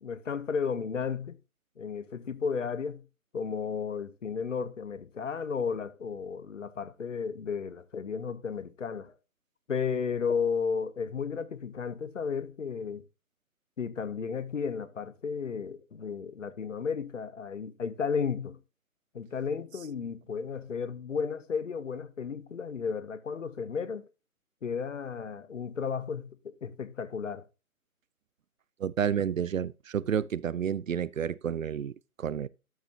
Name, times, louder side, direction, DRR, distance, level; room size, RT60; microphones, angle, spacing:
voice 1, 0.0-1.4 1.8-3.0 3.3-9.1 9.7-13.0 13.8-18.6 19.1-24.1 24.6-26.3 26.6-27.4, left 6 dB, 55° left, 1.0 m, -33 dB
voice 2, 28.8-32.5, right 8 dB, 65° right, 0.5 m, -30 dB
12.5 x 6.9 x 2.9 m
figure-of-eight pair, 155°, 44 cm